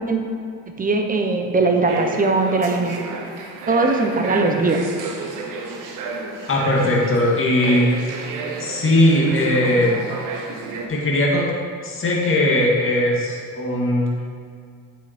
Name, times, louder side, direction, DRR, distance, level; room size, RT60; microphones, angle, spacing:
voice 1, 0.8-3.0 3.7-4.8, right 3 dB, 25° right, 3 dB, 1.1 m, -20 dB
sound 1, 1.9-10.9, right 4 dB, 70° right, 1.2 m, -31 dB
voice 2, 6.5-7.9 8.6-9.9 10.9-11.5 11.8-14.1, left 1 dB, 40° left, -3 dB, 2.1 m, -19 dB
7.9 x 6.0 x 4.4 m, 2.3 s
cardioid pair, 85°, 33 cm